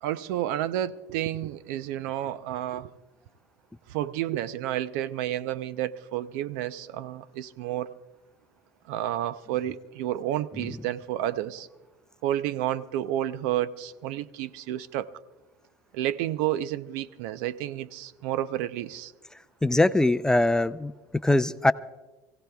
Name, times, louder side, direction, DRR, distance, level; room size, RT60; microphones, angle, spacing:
voice 1, 0.0-2.9 3.9-7.9 8.9-11.7 12.2-15.1 15.9-19.1, right 12 dB, 80° right, 0.6 m, -30 dB
voice 2, 19.6-20.9 21.2-21.7, left 2 dB, 5° left, 0.5 m, -22 dB
27.0 x 16.5 x 2.3 m
supercardioid pair, 105°, 9 cm